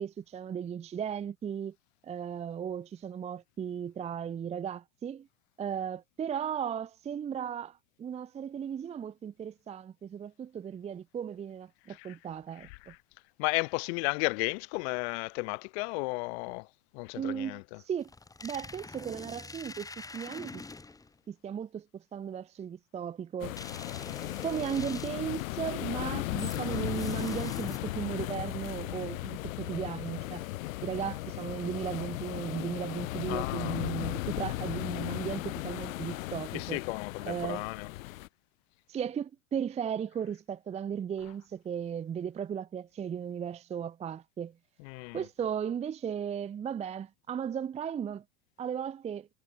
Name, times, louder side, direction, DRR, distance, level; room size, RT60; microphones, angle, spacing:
voice 1, 0.0-1.7 2.0-5.3 5.6-12.9 17.2-18.1 18.4-20.6 21.3-23.5 24.4-30.4 30.8-36.8 37.3-37.6 38.9-44.5 45.1-48.2 48.6-49.3, right 8 dB, 15° right, 0.7 m, -36 dB
voice 2, 13.4-16.7 16.9-17.8 33.3-33.8 36.5-37.9 44.8-45.2, left 30 dB, 50° left, 0.7 m, -33 dB
sound 1, 18.0-21.1 23.6-25.4 26.4-28.1, left 3 dB, 10° left, 2.4 m, -44 dB
sound 2, 23.4-38.3, left 18 dB, 70° left, 1.9 m, -36 dB
supercardioid pair, 130°, 42 cm